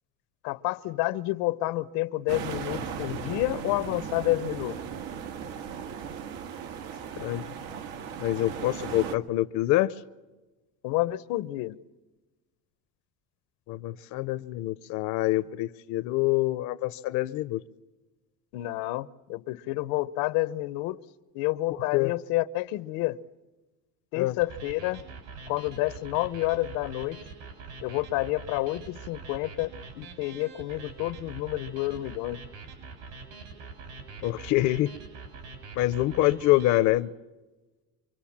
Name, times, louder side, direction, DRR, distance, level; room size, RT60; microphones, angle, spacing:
voice 1, 0.4-4.8 10.8-11.8 18.5-21.0 21.3-23.2 24.1-25.0 25.5-27.2 27.8-32.4, left 18 dB, 85° left, 1.0 m, -29 dB
sound 1, 2.3-9.2, right 7 dB, 90° right, 1.8 m, -37 dB
voice 2, 8.2-9.9 13.7-17.6 21.9-22.1 24.1-24.4 34.2-34.9 35.8-37.1, left 16 dB, 60° left, 0.7 m, -25 dB
sound 2, 24.4-36.8, right 4 dB, 75° right, 7.0 m, -44 dB
26.0 x 24.5 x 7.3 m
cardioid pair, 170°, 33 cm